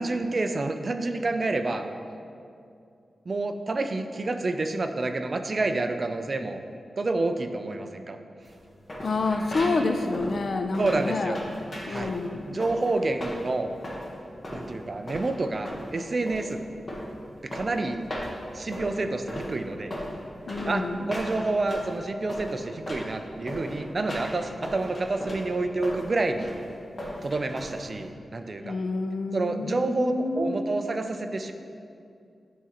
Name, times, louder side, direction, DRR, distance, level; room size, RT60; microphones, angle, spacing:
voice 1, 0.0-1.9 3.3-6.6 7.0-8.2 10.8-11.4 11.9-12.1 12.5-13.7 14.5-16.6 17.4-18.0 18.5-19.9 20.7-26.5 27.2-28.8 29.3-31.5, right 2 dB, 40° right, 7 dB, 0.3 m, -28 dB
sound 1, 8.4-28.1, equal, 30° left, 0.9 m, -37 dB
voice 2, 9.0-11.3 11.9-12.6 20.5-21.1 28.6-30.8, left 3 dB, 55° left, 6 dB, 0.4 m, -28 dB
10.0 x 3.6 x 2.9 m, 2.5 s
wide cardioid pair, 145°, 0 cm